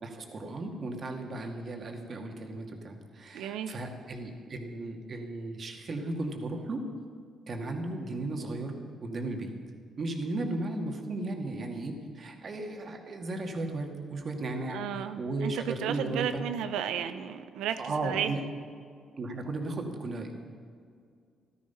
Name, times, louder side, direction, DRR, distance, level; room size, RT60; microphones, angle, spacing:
voice 1, 0.0-6.9 7.5-9.5 10.0-16.4 17.8-18.4 19.2-20.4, right 2 dB, 45° right, 3 dB, 2.2 m, -35 dB
voice 2, 3.3-3.8 14.7-18.4, right 9 dB, 90° right, 10 dB, 0.8 m, -33 dB
14.5 x 12.5 x 5.8 m, 2.2 s
cardioid pair, 90°, 0 cm